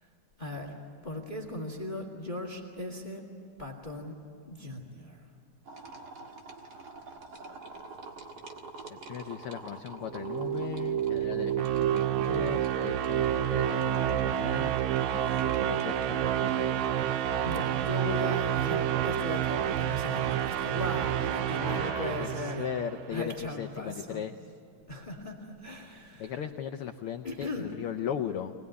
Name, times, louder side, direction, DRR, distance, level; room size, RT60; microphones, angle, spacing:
voice 1, 0.4-3.2 3.6-4.2 4.5-5.2 17.4-22.7 23.1-24.2 24.9-26.3 27.2-27.7, left 2 dB, 15° left, 3 dB, 2.0 m, -38 dB
sound 1, 5.7-17.0, right 3 dB, 40° right, 1.9 m, -48 dB
voice 2, 8.9-14.8 15.1-16.8 21.5-24.3 26.2-28.5, left 9 dB, 90° left, 7 dB, 1.2 m, -38 dB
sound 2, 10.0-23.1, right 10 dB, 75° right, 2.0 m, -29 dB
24.5 x 20.0 x 9.6 m, 2.7 s
omnidirectional pair, 3.5 m